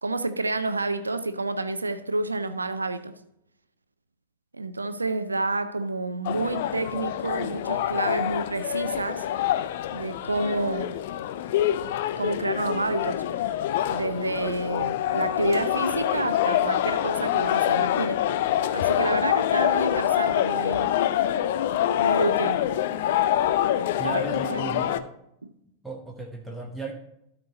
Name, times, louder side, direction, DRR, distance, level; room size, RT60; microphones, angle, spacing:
voice 1, 0.0-3.2 4.5-9.3 9.9-11.0 12.2-13.2 13.9-20.9 22.0-22.7 24.0-24.9 25.4-25.5, right 2 dB, 80° right, 0.5 m, -29 dB
sound 1, 6.2-25.0, left 11 dB, 55° left, 0.4 m, -26 dB
voice 2, 24.0-25.0 25.8-26.9, right 3 dB, 5° right, 1.0 m, -35 dB
12.5 x 4.5 x 3.9 m
figure-of-eight pair, 90°, 0 cm